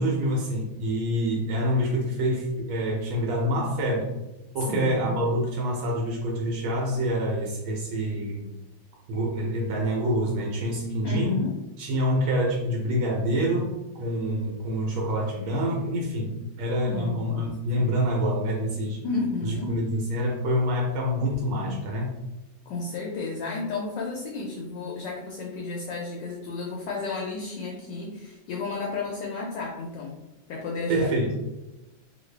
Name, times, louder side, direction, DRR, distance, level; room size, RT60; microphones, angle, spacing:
voice 1, 0.0-4.1 4.5-8.5 9.1-11.5 11.8-19.0 19.4-22.2 30.9-31.5, equal, 80° right, -2 dB, 1.4 m, -26 dB
voice 2, 4.6-5.2 11.0-11.6 16.9-17.5 19.0-19.7 22.7-30.2 30.5-31.1, left 3 dB, 75° left, -2 dB, 1.1 m, -32 dB
3.1 x 2.5 x 3.2 m, 0.99 s
omnidirectional pair, 2.2 m